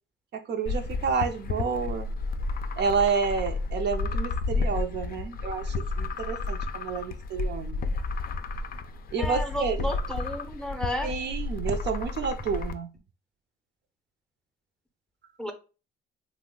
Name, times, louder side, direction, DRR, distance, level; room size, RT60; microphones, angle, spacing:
voice 1, 0.3-2.1 2.8-7.8 9.1-9.9 11.0-12.9, right 5 dB, 60° right, 0.5 m, -29 dB
sound 1, 0.7-12.7, left 3 dB, 50° left, 0.4 m, -31 dB
voice 2, 9.2-11.1 15.4-15.5, equal, 5° left, 0.6 m, -32 dB
3.0 x 2.0 x 3.6 m
cardioid pair, 90°, 20 cm